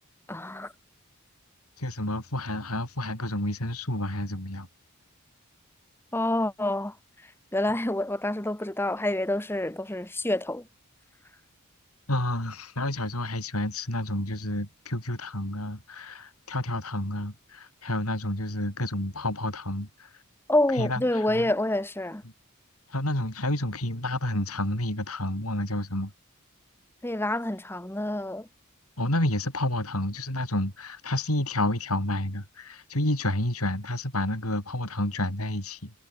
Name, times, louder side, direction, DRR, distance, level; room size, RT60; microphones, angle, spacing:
voice 1, 0.3-0.7 6.1-6.9 7.5-10.6 20.5-22.2 27.0-28.5, left 1 dB, 10° left, 1.3 m, -27 dB
voice 2, 1.8-4.7 12.1-20.1 20.8-21.5 22.9-26.1 29.0-35.9, left 1 dB, 90° left, 7.4 m, -30 dB
head